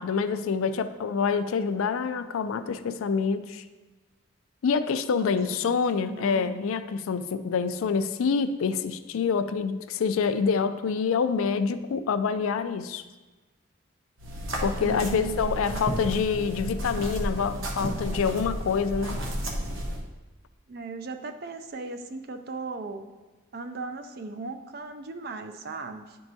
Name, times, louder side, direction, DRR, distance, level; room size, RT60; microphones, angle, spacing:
voice 1, 0.0-3.6 4.6-13.0 14.6-19.2, left 5 dB, 85° left, 10 dB, 0.4 m, -26 dB
voice 2, 5.1-6.5 14.8-16.1 20.7-23.0 23.5-26.2, right 3 dB, 50° right, 8 dB, 0.4 m, -38 dB
sound 1, 14.2-20.0, equal, 80° right, 0.9 m, -32 dB
10.5 x 4.6 x 2.7 m, 1.2 s
head